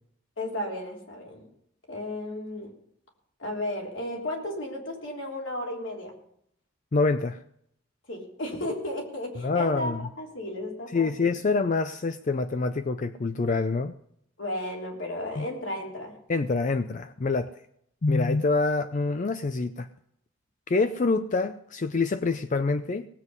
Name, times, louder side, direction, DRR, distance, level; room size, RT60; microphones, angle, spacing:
voice 1, 0.4-1.5 1.9-2.7 3.4-6.1 8.1-9.9 10.2-11.3 14.4-16.2, left 1 dB, 65° left, 0 dB, 3.4 m, -34 dB
voice 2, 6.9-7.4 9.4-10.0 10.9-13.9 15.4-15.5 16.3-17.5 18.0-19.9 20.7-23.1, left 3 dB, 40° left, 10 dB, 0.5 m, -26 dB
18.5 x 8.1 x 5.5 m, 0.70 s
head